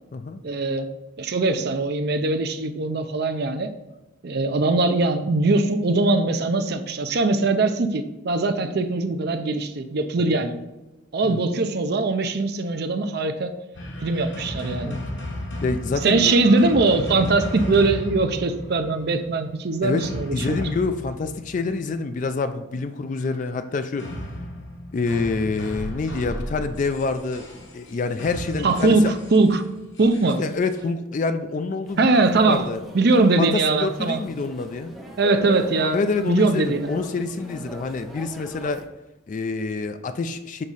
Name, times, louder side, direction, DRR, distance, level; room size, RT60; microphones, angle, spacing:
voice 1, 0.4-0.9 1.2-3.7 4.2-10.6 11.1-13.5 14.0-14.9 16.0-20.6 28.6-29.7 30.0-30.4 32.0-32.7 32.9-34.2 35.2-36.9, right 3 dB, 55° right, 8 dB, 0.5 m, -21 dB
sound 1, 13.7-22.1 24.0-30.8, equal, 65° left, 1.1 m, -34 dB
voice 2, 15.6-16.4 19.8-24.2 24.9-29.1 30.4-32.1 32.5-32.8 33.4-35.0 35.9-38.9 39.3-40.6, left 4 dB, 40° left, 9 dB, 0.3 m, -27 dB
sound 2, 31.9-38.8, equal, ahead, 0.8 m, -41 dB
6.6 x 3.5 x 4.1 m, 1.0 s
head